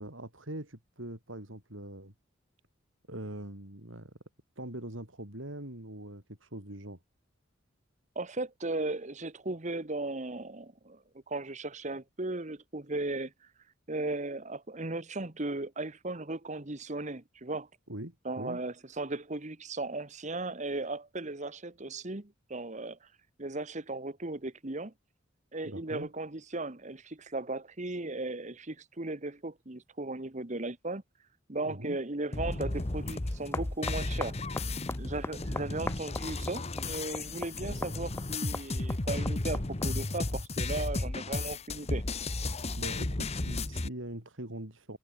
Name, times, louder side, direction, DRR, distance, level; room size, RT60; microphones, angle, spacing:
voice 1, 0.0-2.1 3.1-4.1 4.6-7.0 17.9-18.6 25.6-26.1 31.6-32.0 42.8-45.0, right 1 dB, 80° right, 5.2 m, -42 dB
voice 2, 8.1-11.0 11.3-13.3 13.9-17.7 18.2-23.0 23.4-24.9 25.5-31.0 31.5-34.4 35.0-42.0, right 2 dB, 35° right, 1.5 m, -36 dB
sound 1, 32.3-43.9, left 2 dB, 35° left, 1.2 m, -34 dB
sound 2, 32.7-40.1, left 2 dB, 10° left, 0.5 m, -42 dB
head